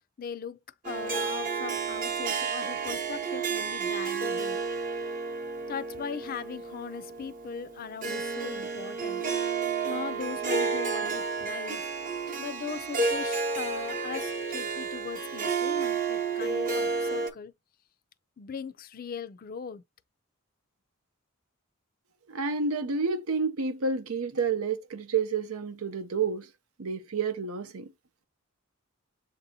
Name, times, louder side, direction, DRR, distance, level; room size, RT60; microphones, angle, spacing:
voice 1, 0.2-0.6 0.8-4.6 5.7-9.2 9.8-11.8 12.4-17.5 18.4-19.8, left 6 dB, 45° left, 0.4 m, -39 dB
Harp, 0.8-17.3, right 4 dB, 40° right, 0.8 m, -31 dB
voice 2, 22.3-26.5 26.8-27.9, right 5 dB, 90° right, 0.7 m, -29 dB
7.3 x 2.7 x 2.7 m
head